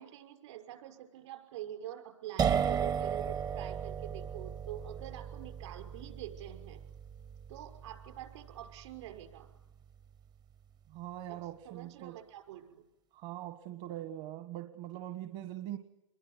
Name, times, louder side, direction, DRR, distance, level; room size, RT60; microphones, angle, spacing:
voice 1, 0.0-6.8 7.5-9.5 11.3-11.4 11.6-12.8, right 11 dB, 65° right, 5 dB, 6.2 m, -46 dB
sound 1, 2.4-10.0, right 8 dB, 25° right, 0.9 m, -36 dB
voice 2, 10.9-12.2 13.1-15.8, right 13 dB, 45° right, 9 dB, 1.6 m, -42 dB
27.0 x 22.0 x 9.8 m, 0.91 s
hypercardioid pair, 110°, 17 cm